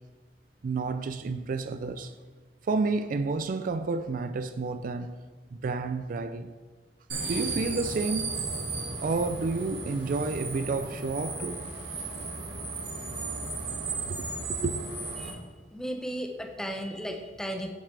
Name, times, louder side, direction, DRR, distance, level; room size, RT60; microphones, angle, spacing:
voice 1, 0.6-2.1 2.6-5.1 5.5-6.5 7.3-8.4 9.0-11.7 14.1-14.7, right 3 dB, 50° right, 0.4 m, -30 dB
sound 1, 7.1-15.3, right 3 dB, 75° right, 2.9 m, -35 dB
voice 2, 15.7-17.7, equal, 5° left, 0.8 m, -35 dB
9.5 x 7.4 x 3.3 m
head